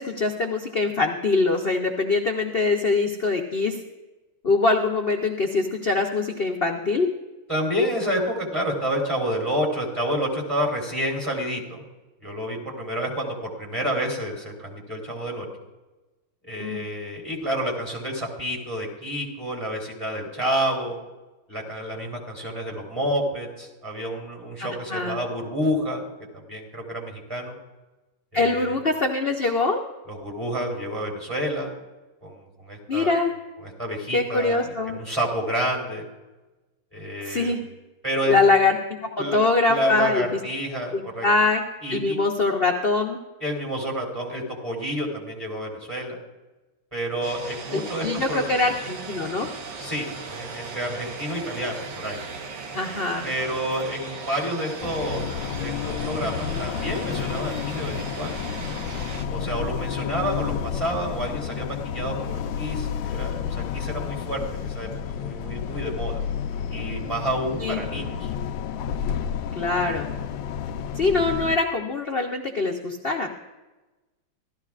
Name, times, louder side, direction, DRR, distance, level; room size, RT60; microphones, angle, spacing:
voice 1, 0.0-3.7 4.4-7.1 16.6-16.8 24.6-25.2 28.3-29.8 32.9-33.3 34.1-35.0 37.2-37.6 38.3-38.8 39.2-40.2 40.9-41.6 41.9-43.2 47.7-49.5 52.7-53.3 67.6-67.8 69.5-70.1 71.0-73.3, left 3 dB, 90° left, 1 dB, 0.5 m, -23 dB
voice 2, 7.5-11.8 12.2-15.5 16.4-21.0 21.5-26.0 26.3-27.5 28.3-28.8 30.1-31.7 32.2-33.2 33.6-36.0 36.9-37.5 38.0-38.4 39.2-39.4 39.7-41.3 41.8-42.2 43.4-46.2 46.9-48.4 49.8-52.2 53.2-55.2 55.6-58.4 59.3-66.2 66.7-68.3, equal, 10° right, -2 dB, 3.6 m, -29 dB
sound 1, 47.2-59.3, right 4 dB, 60° right, 1.6 m, -37 dB
sound 2, 54.8-71.6, left 8 dB, 75° left, 1.2 m, -31 dB
16.5 x 13.5 x 2.4 m, 1.1 s
omnidirectional pair, 2.3 m